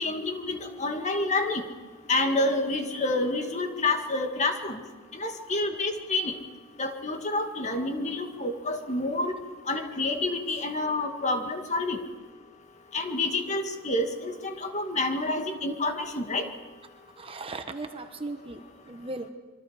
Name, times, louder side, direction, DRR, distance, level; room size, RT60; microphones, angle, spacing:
voice 1, 0.0-1.6 2.1-4.8 5.1-6.3 6.8-9.3 9.7-12.0 12.9-16.5, left 2 dB, 35° left, 5 dB, 1.8 m, -28 dB
voice 2, 17.2-19.3, right 2 dB, 25° right, 7 dB, 1.2 m, -37 dB
26.5 x 24.0 x 5.0 m, 1.4 s
head